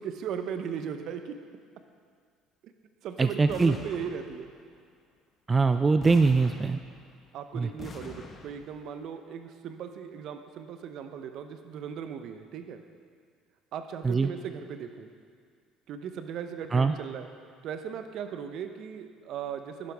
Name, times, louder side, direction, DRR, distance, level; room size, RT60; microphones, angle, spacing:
voice 1, 0.0-1.3 2.6-2.7 3.0-4.5 7.3-12.8 13.7-15.1 15.9-17.3 17.6-19.9, right 7 dB, 60° right, 8 dB, 0.8 m, -37 dB
voice 2, 3.2-3.8 5.5-6.8 7.5-7.7 14.0-14.3 16.7-16.9, right 4 dB, 25° right, 9 dB, 0.4 m, -23 dB
sound 1, 3.5-4.8 6.0-7.3 7.8-8.9, left 4 dB, 35° left, 1.0 m, -45 dB
11.0 x 10.5 x 3.5 m, 2.1 s
hypercardioid pair, 65°, 0 cm